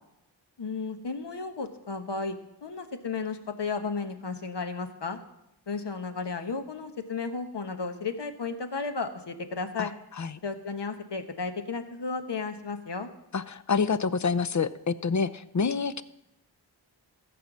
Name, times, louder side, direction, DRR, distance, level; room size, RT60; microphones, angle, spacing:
voice 1, 0.6-2.3 2.6-5.2 5.7-9.9 10.4-13.1, left 4 dB, 65° left, 7 dB, 1.2 m, -33 dB
voice 2, 13.3-16.0, left 5 dB, 40° left, 15 dB, 0.6 m, -27 dB
14.5 x 5.3 x 7.3 m, 0.87 s
wide cardioid pair, 50°, 45 cm